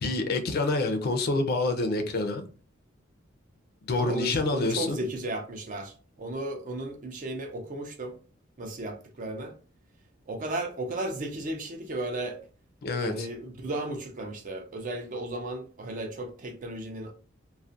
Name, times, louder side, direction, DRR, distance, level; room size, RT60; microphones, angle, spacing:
voice 1, 0.0-2.4 3.8-5.0 12.8-13.3, left 2 dB, 50° left, 0.4 m, -27 dB
voice 2, 4.0-8.2 8.6-9.5 10.3-12.4 13.0-17.1, right 1 dB, 40° right, 0.5 m, -34 dB
2.3 x 2.1 x 2.5 m
head